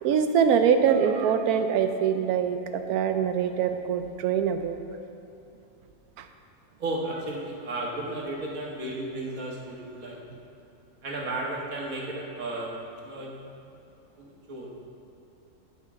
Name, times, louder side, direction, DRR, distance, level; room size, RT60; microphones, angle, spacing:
voice 1, 0.0-4.8 6.2-6.3, right 7 dB, 85° right, 8 dB, 1.1 m, -24 dB
voice 2, 6.8-10.2 11.0-12.7 13.0-13.4 14.2-14.7, right 2 dB, 65° right, -3 dB, 1.8 m, -34 dB
15.0 x 5.5 x 3.7 m, 2.8 s
omnidirectional pair, 1.6 m